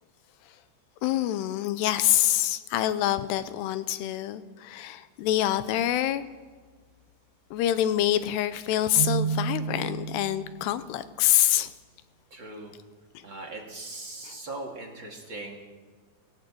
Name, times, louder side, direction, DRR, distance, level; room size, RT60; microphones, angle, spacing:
voice 1, 1.0-6.2 7.5-11.7, left 13 dB, 80° left, 13 dB, 2.7 m, -26 dB
Keyboard (musical), 9.0-10.8, right 7 dB, 80° right, 1.5 m, -30 dB
voice 2, 12.3-12.7 13.2-15.6, right 2 dB, 35° right, 0 dB, 2.4 m, -39 dB
18.0 x 17.5 x 8.6 m, 1.5 s
omnidirectional pair, 5.0 m